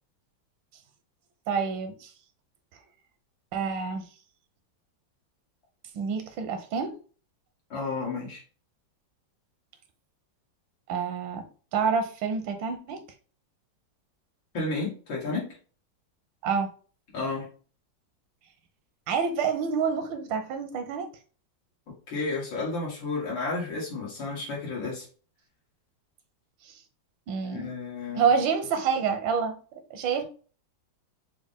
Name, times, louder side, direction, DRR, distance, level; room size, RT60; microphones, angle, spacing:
voice 1, 1.5-2.1 3.5-4.0 5.9-6.9 10.9-11.4 11.7-13.0 16.4-16.7 19.1-21.1 26.6-26.8 27.3-27.7 28.1-29.6 29.9-30.2, right 6 dB, 85° right, 1.5 m, -27 dB
voice 2, 7.7-8.4 14.5-15.6 17.1-17.5 22.1-25.1 27.5-28.3, left 3 dB, 90° left, 2.6 m, -32 dB
6.1 x 2.3 x 3.5 m
omnidirectional pair, 2.0 m